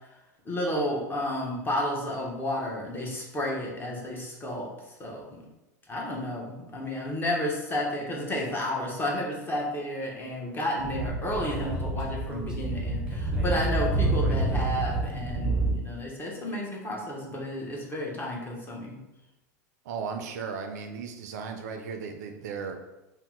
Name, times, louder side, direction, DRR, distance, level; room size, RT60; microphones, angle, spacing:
voice 1, 0.5-4.7 5.0-5.5 5.9-19.0, left 1 dB, 20° left, -1 dB, 0.8 m, -32 dB
Speech / Wind, 10.8-15.7, right 2 dB, 10° right, 0.7 m, -28 dB
voice 2, 19.8-22.7, right 5 dB, 70° right, 5 dB, 0.4 m, -36 dB
2.7 x 2.1 x 3.6 m, 1.0 s
hypercardioid pair, 95°, 10 cm